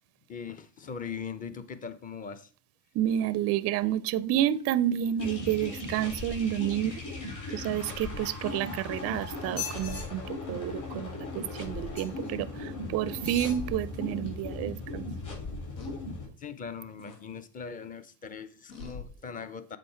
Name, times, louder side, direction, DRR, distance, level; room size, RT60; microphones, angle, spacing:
voice 1, 0.3-2.5 16.4-19.8, left 6 dB, 15° left, 0.5 m, -40 dB
voice 2, 2.9-6.9 7.5-10.2 10.5-15.1, right 11 dB, 35° right, 0.4 m, -29 dB
sound 1, 5.2-6.3 8.0-8.1 8.9-9.3 10.0-10.3 10.7-10.9 13.2-13.6 14.2-14.3 15.8-15.9 17.0-17.2 18.7-19.1, left 5 dB, 85° left, 1.8 m, -48 dB
sound 2, 5.2-16.3, left 2 dB, 40° left, 3.6 m, -38 dB
sound 3, 8.3-9.0 9.4-10.0 11.9-12.3 13.1-13.6 14.3-14.4, left 6 dB, 55° left, 3.4 m, -40 dB
7.6 x 4.1 x 4.3 m
supercardioid pair, 100°, 48 cm